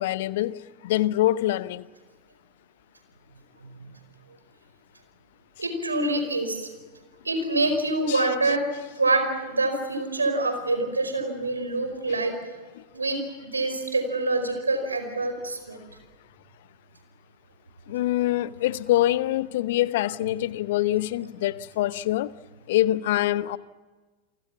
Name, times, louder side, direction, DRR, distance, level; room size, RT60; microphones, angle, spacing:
voice 1, 0.0-1.9 8.1-8.3 12.8-12.9 17.9-22.3 22.7-23.6, left 14 dB, 55° left, 0.8 m, -25 dB
voice 2, 5.6-6.7 7.2-8.7 9.0-12.3 12.9-15.8, right 2 dB, 80° right, 4.9 m, -26 dB
29.0 x 24.5 x 7.2 m
figure-of-eight pair, 90°, 0 cm